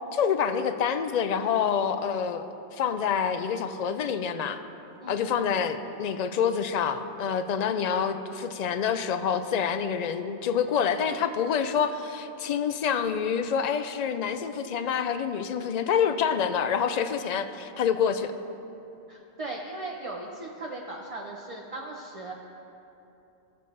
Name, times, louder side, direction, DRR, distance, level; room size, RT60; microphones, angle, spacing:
voice 1, 0.1-2.5 2.7-4.6 5.1-18.3, left 7 dB, 55° left, 9 dB, 0.5 m, -27 dB
voice 2, 19.1-22.3, right 2 dB, 35° right, -1 dB, 0.7 m, -38 dB
17.0 x 6.8 x 3.2 m, 2.8 s
omnidirectional pair, 1.1 m